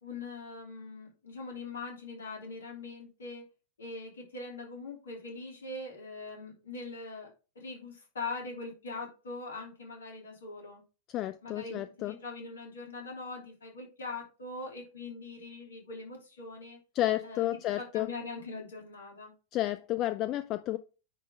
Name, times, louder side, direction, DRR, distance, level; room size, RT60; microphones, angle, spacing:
voice 1, 0.0-3.5 3.8-10.8 11.4-16.8 17.2-19.3, left 3 dB, 65° left, 3.2 m, -42 dB
voice 2, 11.1-12.1 16.9-18.1 19.5-20.8, left 15 dB, 35° left, 0.4 m, -31 dB
9.9 x 3.7 x 4.7 m
figure-of-eight pair, 90°, 0 cm